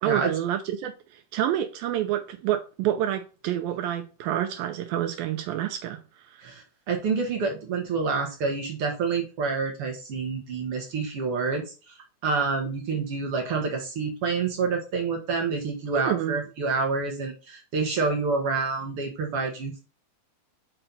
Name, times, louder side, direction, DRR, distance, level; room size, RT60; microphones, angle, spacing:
voice 1, 0.0-6.4 15.9-16.4, right 11 dB, 80° right, 2.3 m, -28 dB
voice 2, 6.4-11.9 12.2-19.8, right 4 dB, 55° right, 1.6 m, -28 dB
5.8 x 5.5 x 3.9 m
omnidirectional pair, 4.3 m